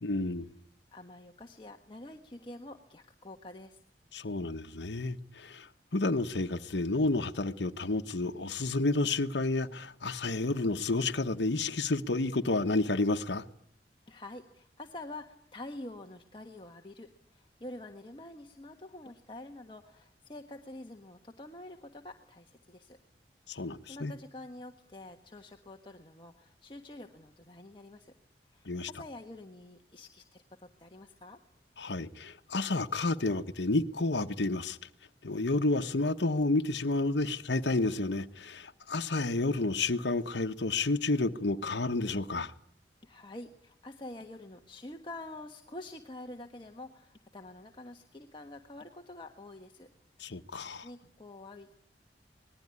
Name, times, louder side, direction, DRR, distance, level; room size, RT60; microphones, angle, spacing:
voice 1, 0.0-0.5 4.1-13.4 23.5-24.1 28.7-28.9 31.8-34.8 35.2-42.5 50.2-50.9, left 2 dB, 85° left, 1.2 m, -30 dB
voice 2, 0.9-3.8 14.1-23.0 23.5-28.1 28.5-31.4 43.0-49.9 50.8-51.8, left 2 dB, 30° left, 1.5 m, -47 dB
26.0 x 20.5 x 9.8 m
head